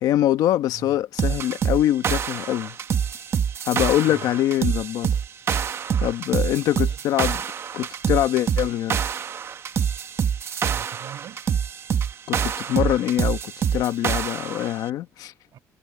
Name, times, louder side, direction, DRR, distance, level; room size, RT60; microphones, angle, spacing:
voice 1, 0.0-2.7 3.6-5.1 6.0-7.4 7.7-9.0 12.3-15.3, left 13 dB, 85° left, 1.2 m, -23 dB
sound 1, 1.2-14.7, right 7 dB, 45° right, 1.3 m, -26 dB
voice 2, 6.4-7.1 10.6-11.4 15.5-15.6, right 11 dB, 70° right, 5.1 m, -43 dB
cardioid pair, 140°, 6 cm